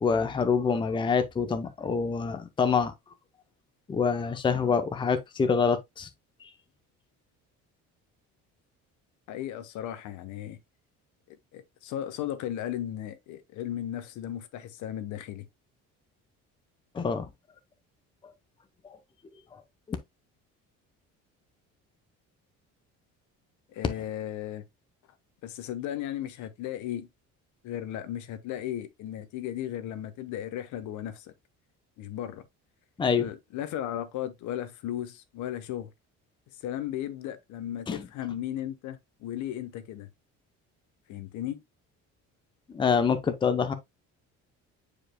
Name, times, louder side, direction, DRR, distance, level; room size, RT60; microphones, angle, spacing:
voice 1, 0.0-2.9 3.9-6.1 16.9-17.3 18.8-19.0 19.5-19.6 19.9-20.0 33.0-33.3 37.9-38.0 42.7-43.7, left 5 dB, 15° left, 0.7 m, -26 dB
voice 2, 9.3-10.6 11.3-15.4 23.7-24.6 25.4-27.1 27.6-31.3 32.0-32.4 33.2-35.9 36.6-40.1 41.1-41.6, left 11 dB, 70° left, 1.1 m, -35 dB
8.9 x 5.0 x 2.2 m
cardioid pair, 155°, 31 cm